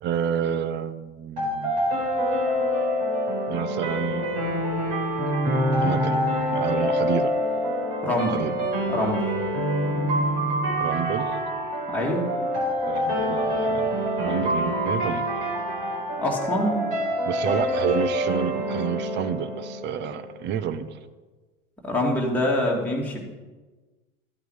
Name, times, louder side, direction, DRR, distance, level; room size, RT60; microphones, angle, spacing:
voice 1, 0.0-1.8 3.5-4.4 5.8-6.2 6.5-7.3 8.3-8.5 10.8-11.7 12.9-15.4 17.3-21.0, right 8 dB, 25° right, 13 dB, 0.6 m, -29 dB
sound 1, 1.4-20.3, equal, 50° right, 4.5 m, -26 dB
voice 2, 8.0-8.4 8.9-9.3 11.9-12.2 16.2-16.9 21.8-23.3, left 1 dB, 5° left, -3 dB, 2.4 m, -25 dB
13.0 x 8.0 x 4.9 m, 1.3 s
hypercardioid pair, 105°, 43 cm